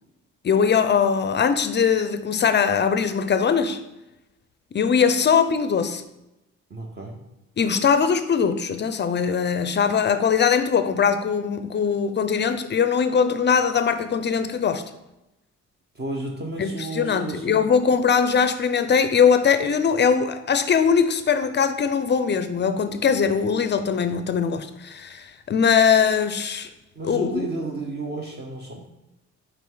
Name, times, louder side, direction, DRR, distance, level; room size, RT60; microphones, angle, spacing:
voice 1, 0.4-3.8 4.7-6.0 7.6-14.8 16.6-26.7 27.1-27.5, left 6 dB, 35° left, 10 dB, 0.5 m, -21 dB
voice 2, 6.7-7.2 15.9-17.6 26.9-28.9, right 2 dB, 35° right, 0 dB, 0.9 m, -32 dB
5.3 x 4.8 x 3.8 m, 0.93 s
cardioid pair, 90°, 30 cm